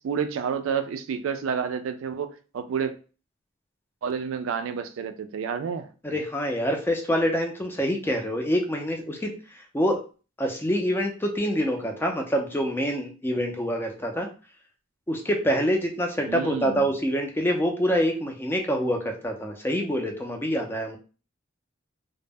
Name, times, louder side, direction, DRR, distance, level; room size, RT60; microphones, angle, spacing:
voice 1, 0.0-3.0 4.0-5.9 16.3-16.9, right 6 dB, 85° right, 0.3 m, -29 dB
voice 2, 6.0-10.0 10.4-14.3 15.1-21.0, equal, 10° left, 0.4 m, -26 dB
2.0 x 2.0 x 3.4 m
head